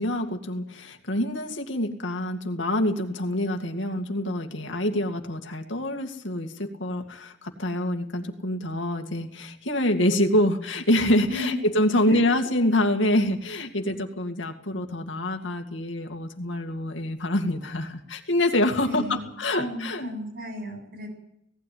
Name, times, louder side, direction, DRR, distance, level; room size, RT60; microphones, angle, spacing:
voice 1, 0.0-20.1, left 1 dB, 80° left, 5 dB, 2.3 m, -26 dB
voice 2, 18.8-21.1, left 1 dB, 50° right, 4 dB, 7.4 m, -34 dB
18.0 x 15.5 x 9.5 m, 0.77 s
head